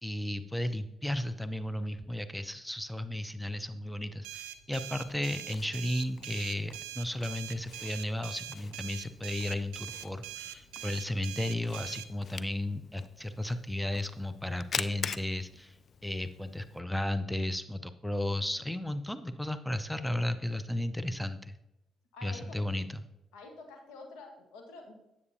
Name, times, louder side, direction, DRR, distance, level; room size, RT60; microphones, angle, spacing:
voice 1, 0.0-15.8 16.0-21.6 22.2-23.0, left 1 dB, 5° left, 11 dB, 0.6 m, -34 dB
sound 1, 4.2-12.1, right 13 dB, 85° right, 0.5 m, -43 dB
Camera, 4.8-16.8, left 6 dB, 55° left, 0.4 m, -45 dB
voice 2, 22.1-22.6 23.3-24.9, left 3 dB, 85° left, 3 dB, 1.5 m, -48 dB
9.5 x 8.4 x 2.8 m, 0.90 s
hypercardioid pair, 55°, 0 cm